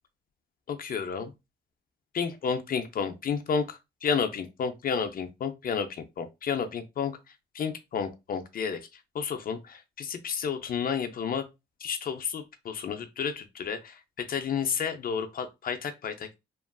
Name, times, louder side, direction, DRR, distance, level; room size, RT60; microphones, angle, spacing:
voice 1, 0.7-1.3 2.1-7.1 7.5-8.8 9.1-11.4 11.8-16.4, left 6 dB, 45° left, 0.5 m, -31 dB
2.9 x 2.3 x 2.3 m
cardioid pair, 90°, 20 cm